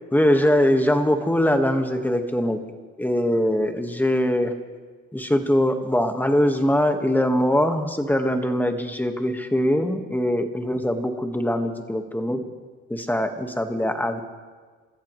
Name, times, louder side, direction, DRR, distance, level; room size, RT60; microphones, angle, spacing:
voice 1, 0.1-2.6 3.0-4.5 5.1-12.4 12.9-14.2, equal, 5° left, 6 dB, 1.6 m, -22 dB
28.5 x 14.0 x 3.2 m, 1.5 s
cardioid pair, 90°, 30 cm